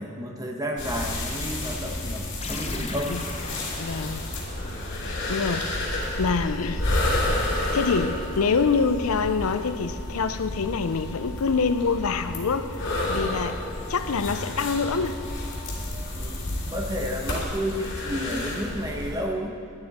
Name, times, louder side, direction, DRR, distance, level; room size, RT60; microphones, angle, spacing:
voice 1, 0.0-3.3 16.1-16.4 16.7-19.5, equal, 15° right, 1 dB, 1.1 m, -31 dB
sound 1, 0.8-19.2, left 1 dB, 55° left, 2.7 m, -31 dB
sound 2, 2.4-7.1, left 3 dB, 30° left, 0.7 m, -41 dB
voice 2, 3.8-4.2 5.3-5.6 6.2-6.8 7.7-12.7 13.1-13.6 13.9-15.2, left 5 dB, 90° left, 11 dB, 0.6 m, -25 dB
sound 3, 5.8-15.8, left 12 dB, 50° right, 2.9 m, -49 dB
12.0 x 11.5 x 4.2 m, 2.7 s
head